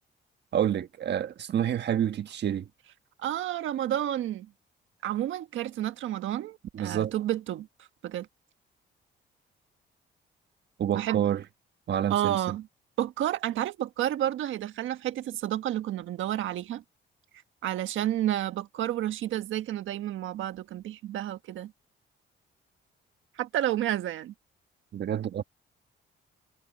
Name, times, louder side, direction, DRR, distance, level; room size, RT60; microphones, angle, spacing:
voice 1, 0.5-2.7 6.7-7.1 10.8-11.4 11.9-12.4 24.9-25.4, right 10 dB, 60° right, 1.4 m, -28 dB
voice 2, 3.2-4.5 5.0-7.7 8.0-8.3 10.9-11.3 12.1-12.7 13.0-16.8 17.6-21.7 23.4-24.3, right 12 dB, 80° right, 1.5 m, -30 dB
cardioid pair, 90°, 20 cm